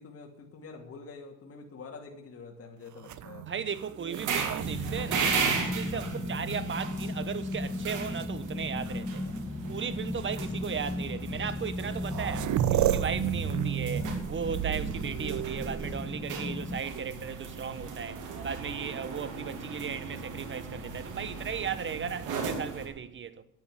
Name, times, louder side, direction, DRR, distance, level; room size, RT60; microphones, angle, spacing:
voice 1, 0.0-3.6 5.9-6.1, left 4 dB, 50° left, 2.6 m, -46 dB
sound 1, 3.0-6.8 7.5-8.3 9.4-9.5 10.2-10.4 11.5-11.6 11.8-16.3 18.2-18.9, right 12 dB, 70° right, 0.8 m, -33 dB
voice 2, 3.4-9.3 9.7-23.4, right 7 dB, 40° right, 1.2 m, -36 dB
sound 2, 4.1-22.9, right 5 dB, 85° right, 2.8 m, -37 dB
sound 3, 4.6-16.8, left 2 dB, 10° left, 0.5 m, -36 dB
9.9 x 8.8 x 8.2 m
cardioid pair, 90°, 30 cm